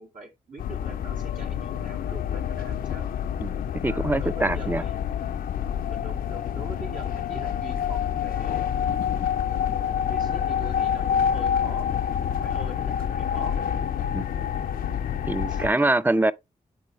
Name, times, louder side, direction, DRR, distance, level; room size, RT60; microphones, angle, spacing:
voice 1, 0.0-3.1 3.9-4.9 5.9-9.0 9.5-11.9 12.3-13.6 14.3-14.5 15.5-15.6, right 2 dB, 60° right, 2.4 m, -43 dB
sound 1, 0.6-15.7, left 8 dB, 70° left, 0.5 m, -27 dB
voice 2, 3.4-4.8 14.1-14.2 15.3-16.3, right 2 dB, 10° right, 0.5 m, -24 dB
9.2 x 3.8 x 3.1 m
supercardioid pair, 45°, 15 cm